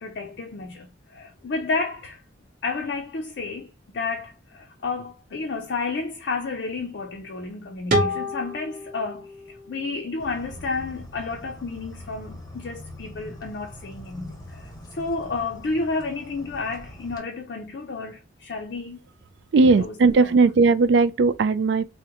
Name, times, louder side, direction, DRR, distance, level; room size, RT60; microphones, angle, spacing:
voice 1, 0.0-2.2 2.6-19.0 19.8-20.3, left 3 dB, 55° left, 0.4 m, -31 dB
sound 1, 7.9-10.7, equal, 45° right, 0.7 m, -29 dB
sound 2, 10.2-17.2, left 1 dB, 20° left, 0.8 m, -43 dB
voice 2, 19.5-21.8, right 4 dB, 60° right, 0.3 m, -18 dB
3.6 x 2.1 x 2.9 m
head